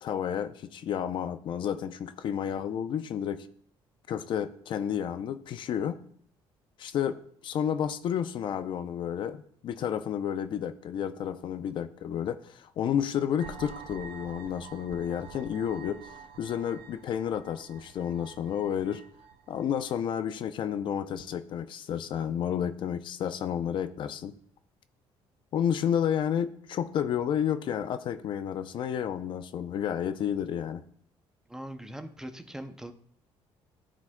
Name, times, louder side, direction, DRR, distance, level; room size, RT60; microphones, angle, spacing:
voice 1, 0.0-3.5 4.1-6.0 6.8-7.2 7.4-16.0 16.4-19.0 19.5-24.3 25.5-30.8, left 9 dB, 55° left, 11 dB, 0.5 m, -31 dB
sound 1, 13.4-20.1, right 6 dB, 75° right, 0.6 m, -48 dB
voice 2, 31.5-32.9, right 1 dB, 5° right, 7 dB, 0.5 m, -41 dB
13.0 x 5.0 x 2.2 m, 0.62 s
cardioid pair, 145°, 10 cm